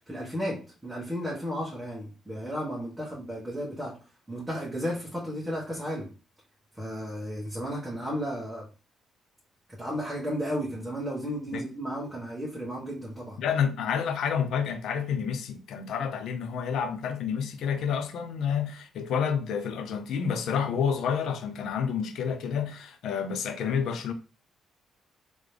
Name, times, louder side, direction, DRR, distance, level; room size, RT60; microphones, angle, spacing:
voice 1, 0.1-4.0 4.3-6.1 6.8-8.7 9.7-13.4, equal, 5° right, 1.5 m, -33 dB
voice 2, 13.4-24.1, left 7 dB, 75° left, 0.6 m, -29 dB
3.8 x 3.1 x 3.3 m
cardioid pair, 90°, 0 cm